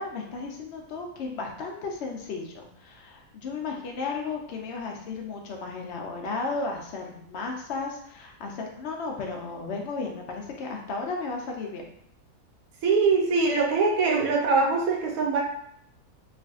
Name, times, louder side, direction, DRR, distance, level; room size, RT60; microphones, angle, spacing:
voice 1, 0.0-11.9, left 4 dB, 70° left, 0 dB, 0.6 m, -34 dB
voice 2, 12.8-15.4, right 4 dB, 70° right, -1 dB, 1.1 m, -22 dB
3.3 x 2.5 x 2.4 m, 0.70 s
omnidirectional pair, 1.6 m